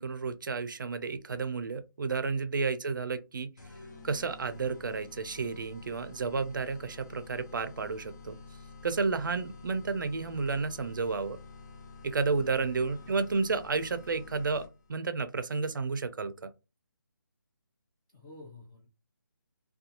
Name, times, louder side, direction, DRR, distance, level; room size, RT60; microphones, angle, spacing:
voice 1, 0.0-3.5 4.0-8.4 8.8-11.4 12.0-16.5, right 4 dB, 65° right, 0.4 m, -31 dB
sound 1, 3.6-15.0, left 4 dB, 55° left, 0.7 m, -49 dB
voice 2, 12.9-13.5 18.1-18.9, left 2 dB, 15° left, 0.5 m, -52 dB
2.5 x 2.2 x 2.7 m
hypercardioid pair, 170°, 11 cm